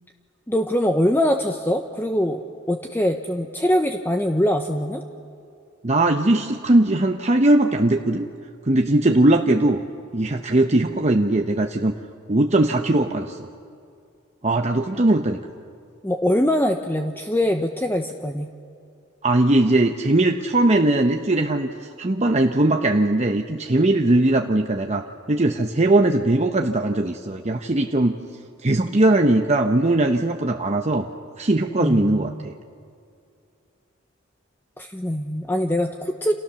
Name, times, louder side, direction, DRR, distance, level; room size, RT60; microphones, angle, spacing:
voice 1, 0.5-5.0 16.0-18.5 31.8-32.4 34.8-36.3, equal, 10° left, 5 dB, 0.9 m, -23 dB
voice 2, 5.8-8.3 8.7-9.8 10.1-11.9 12.3-13.5 14.4-15.4 19.2-28.2 28.6-31.1 31.4-32.5, right 2 dB, 35° right, 4 dB, 0.9 m, -20 dB
30.0 x 27.5 x 6.9 m, 2.4 s
head